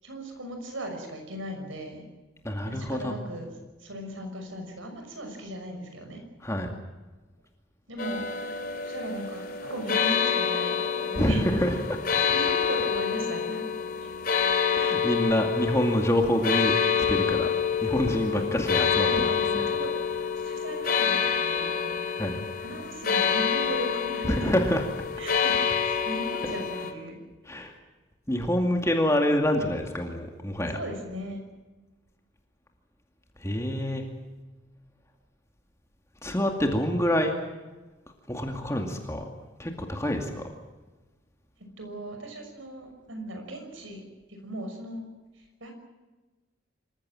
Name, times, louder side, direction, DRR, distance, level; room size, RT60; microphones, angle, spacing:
voice 1, 0.0-2.0 2.6-3.5 3.8-6.2 7.9-8.2 8.8-10.8 11.0-11.5 12.3-13.6 18.3-18.5 18.9-19.9 20.3-21.9 22.6-24.8 25.2-27.2 27.6-27.7 30.7-31.4 41.8-44.0 44.4-45.0 45.6-45.7, right 1 dB, 90° right, 4 dB, 6.1 m, -37 dB
voice 2, 2.4-3.2 6.4-6.7 11.2-11.8 14.7-16.7 17.1-17.5 17.8-19.3 19.6-19.7 22.2-22.4 24.2-24.9 27.5-27.7 28.3-30.8 33.4-34.0 36.2-37.3 38.3-39.3 39.6-40.4, equal, 15° left, 3 dB, 2.3 m, -26 dB
sound 1, 8.0-26.9, left 7 dB, 45° left, 2.8 m, -27 dB
26.5 x 15.5 x 9.0 m, 1.2 s
head